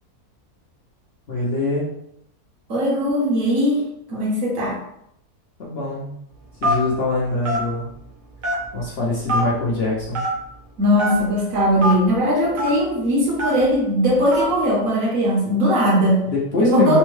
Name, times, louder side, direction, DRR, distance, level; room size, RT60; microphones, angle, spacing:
voice 1, 1.3-1.9 5.6-6.1 6.6-7.9 8.7-10.3 16.2-17.0, left 2 dB, 55° left, -5 dB, 0.8 m, -23 dB
voice 2, 2.7-3.8 4.1-4.8 10.8-16.2 16.6-17.0, equal, 65° right, -3 dB, 1.3 m, -19 dB
Telephone, 6.6-6.9 7.4-7.6 8.4-8.8 9.3-9.4 10.1-10.3 11.0-11.1 11.8-11.9 12.6-12.7 13.4-13.6 14.3-14.5, left 1 dB, 40° right, 0.8 m, -22 dB
3.4 x 2.2 x 3.1 m, 0.76 s
omnidirectional pair, 1.6 m